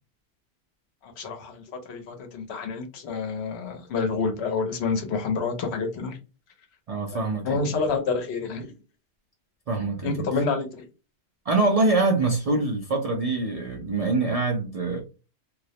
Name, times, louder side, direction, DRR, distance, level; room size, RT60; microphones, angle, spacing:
voice 1, 1.0-6.2 7.1-8.7 10.0-10.9, left 4 dB, 70° left, 0.9 m, -28 dB
voice 2, 6.9-7.8 9.7-10.3 11.5-15.0, right 3 dB, 60° right, 0.4 m, -24 dB
2.3 x 2.0 x 2.6 m
omnidirectional pair, 1.2 m